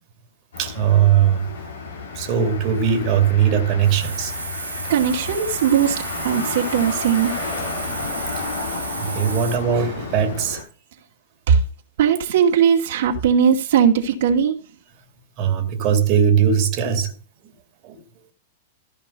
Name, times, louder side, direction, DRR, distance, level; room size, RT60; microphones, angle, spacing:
Motor vehicle (road), 0.5-10.6, left 4 dB, 80° left, 4.1 m, -32 dB
voice 1, 0.6-1.5 2.1-4.3 6.3-6.5 8.4-8.5 9.1-10.7 15.4-17.1 17.4-17.5 17.8-18.0, right 8 dB, 45° right, 2.4 m, -19 dB
Hiss, 3.8-9.6, right 5 dB, 90° right, 2.7 m, -33 dB
voice 2, 4.9-7.3 11.5-11.6 12.0-14.6, right 8 dB, 65° right, 2.3 m, -18 dB
14.5 x 5.4 x 5.6 m
hypercardioid pair, 105°, 0 cm